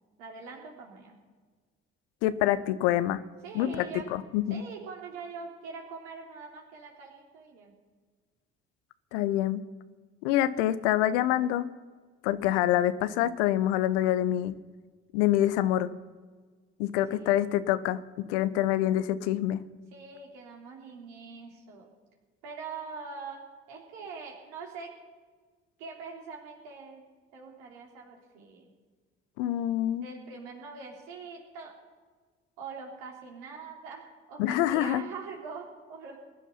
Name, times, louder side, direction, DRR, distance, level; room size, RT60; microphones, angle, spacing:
voice 1, 0.2-1.1 3.4-4.1 4.5-7.7 17.1-17.5 19.9-21.9 22.4-24.9 25.8-27.1 27.3-28.7 30.0-31.7 32.6-36.2, right 5 dB, 65° right, -1 dB, 3.4 m, -43 dB
voice 2, 2.2-3.2 3.5-3.8 4.1-4.6 9.1-9.6 10.2-11.7 12.2-14.5 15.1-15.9 16.8-18.0 18.3-19.6 29.4-30.1 34.4-35.0, left 13 dB, 65° left, 15 dB, 0.8 m, -26 dB
21.0 x 11.0 x 5.7 m, 1.5 s
figure-of-eight pair, 40°, 37 cm